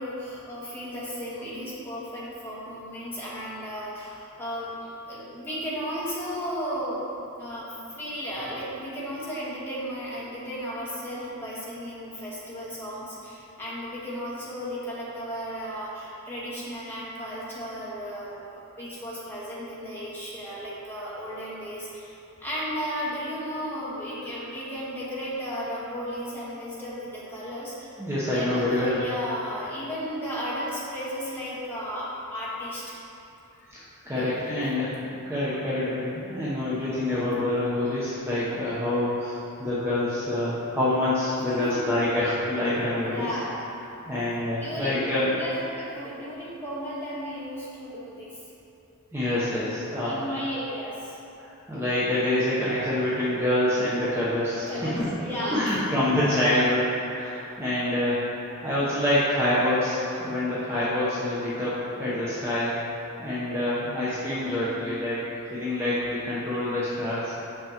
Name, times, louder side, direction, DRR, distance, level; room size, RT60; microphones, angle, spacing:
voice 1, 0.0-4.7 5.1-7.0 7.4-27.9 28.3-32.9 33.5-34.4 41.4-41.9 42.9-43.6 44.6-48.4 50.0-51.2 54.3-55.9, equal, 10° left, -9 dB, 1.2 m, -34 dB
voice 2, 28.0-29.0 33.7-43.4 43.8-45.3 49.1-50.5 51.4-55.1 55.4-58.2 58.6-62.7 63.2-65.2 65.5-67.3, left 1 dB, 10° right, -11 dB, 0.7 m, -26 dB
6.2 x 5.7 x 2.9 m, 2.8 s
head